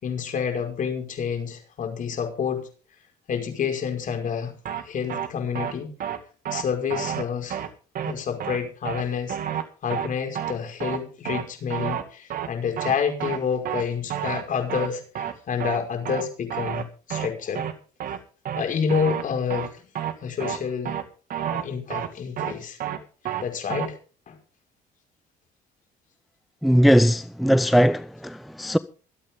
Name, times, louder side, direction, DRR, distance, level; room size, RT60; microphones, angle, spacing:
voice 1, 0.0-2.7 3.3-4.5 4.8-5.9 6.5-7.6 8.0-9.4 9.8-15.0 15.5-17.7 18.5-19.9 20.2-21.0 21.5-22.8 23.2-24.0 24.3-24.4, left 6 dB, 50° left, 5.6 m, -28 dB
sound 1, 4.7-4.8 5.1-5.3 5.6-5.7 6.0-6.2 6.5-6.6 6.9-7.2 7.5-7.7 8.0-8.1 8.4-8.6 8.9-9.0 9.3-9.6 9.9-10.1 10.4-10.5 10.8-11.0 11.3-11.4 11.7-12.0 12.3-12.5 12.8-12.9 13.2-13.4 13.7-13.8 14.1-14.4 14.7-14.9 15.2-15.3 15.6-15.8 16.1-16.2 16.5-16.8 17.1-17.3 17.6-17.7 18.0-18.2 18.5-18.6 18.9-19.2 19.5-19.7 20.0-20.1 20.4-20.6 20.9-21.0 21.3-21.6 21.9-22.1 22.4-22.5 22.8-23.0 23.3-23.4 23.7-23.9, right 10 dB, 55° right, 2.1 m, -29 dB
voice 2, 26.6-28.8, equal, ahead, 0.6 m, -19 dB
25.5 x 8.9 x 3.8 m
cardioid pair, 110°, 17 cm